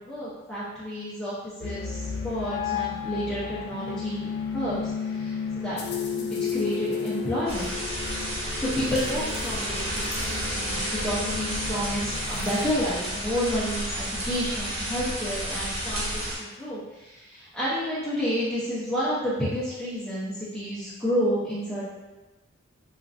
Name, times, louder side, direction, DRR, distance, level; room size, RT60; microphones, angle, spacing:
voice 1, 0.0-1.3 1.6-4.8 5.1-5.8 6.2-7.7 8.5-21.8, equal, 5° left, -12 dB, 0.5 m, -30 dB
sound 1, 1.6-12.7, left 6 dB, 50° left, 0.3 m, -33 dB
sound 2, 7.5-16.4, equal, 30° right, 0.7 m, -31 dB
3.0 x 2.4 x 2.4 m, 1.1 s
head